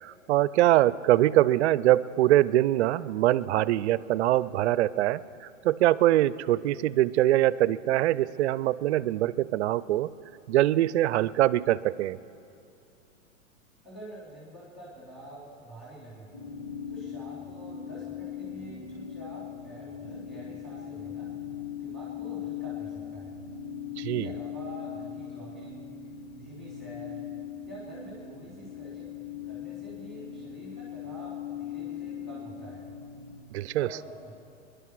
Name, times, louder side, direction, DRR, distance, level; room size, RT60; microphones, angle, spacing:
voice 1, 0.0-10.1 10.5-12.2 24.0-24.3 33.5-33.9, right 14 dB, 55° right, 19 dB, 0.5 m, -23 dB
voice 2, 13.8-16.3 16.9-21.3 21.8-23.4 24.0-25.9 26.3-27.2 27.7-32.9 33.7-34.3, right 1 dB, ahead, -6 dB, 2.9 m, -46 dB
sound 1, 16.3-33.4, left 9 dB, 20° left, 2.7 m, -39 dB
22.0 x 11.0 x 4.8 m, 2.6 s
hypercardioid pair, 130°, 40 cm